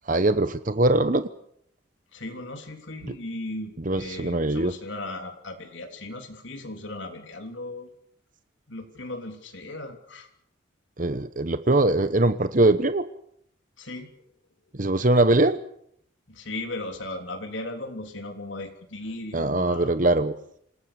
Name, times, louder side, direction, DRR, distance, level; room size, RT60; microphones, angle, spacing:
voice 1, 0.1-1.3 3.0-3.1 3.8-4.7 11.0-13.1 14.7-15.6 19.3-20.3, right 2 dB, 40° right, 11 dB, 1.0 m, -22 dB
voice 2, 2.1-7.9 8.7-10.3 13.8-14.1 16.3-20.0, left 2 dB, 70° left, 5 dB, 3.4 m, -37 dB
27.0 x 19.0 x 6.9 m, 0.68 s
head